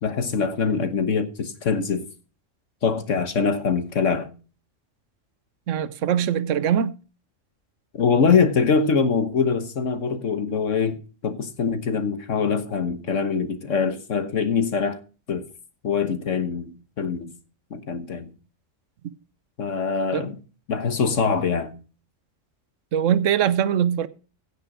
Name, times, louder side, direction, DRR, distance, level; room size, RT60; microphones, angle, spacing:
voice 1, 0.0-2.1 2.8-4.3 7.9-15.0 15.3-15.5 15.8-17.3 17.7-18.3 19.6-20.4 20.7-21.7, left 5 dB, 70° left, 1.6 m, -23 dB
voice 2, 5.7-6.9 20.1-20.3 22.9-24.1, right 9 dB, 75° right, 1.1 m, -22 dB
16.5 x 6.9 x 5.0 m
omnidirectional pair, 1.3 m